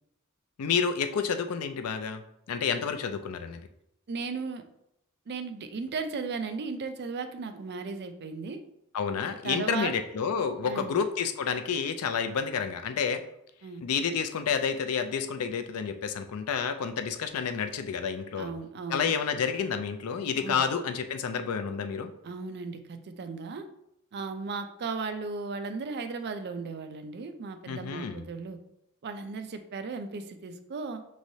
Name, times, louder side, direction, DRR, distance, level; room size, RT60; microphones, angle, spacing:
voice 1, 0.6-2.2 2.5-3.6 8.9-13.2 13.8-18.5 18.9-22.1 27.7-28.2, left 6 dB, 75° left, 9 dB, 0.4 m, -29 dB
voice 2, 4.1-4.6 5.3-8.6 9.4-9.9 10.6-11.0 13.6-13.8 18.4-19.1 20.4-20.6 22.2-23.7 24.1-28.6 29.0-31.0, right 4 dB, 50° right, 8 dB, 0.4 m, -36 dB
6.1 x 3.1 x 2.7 m, 0.79 s
head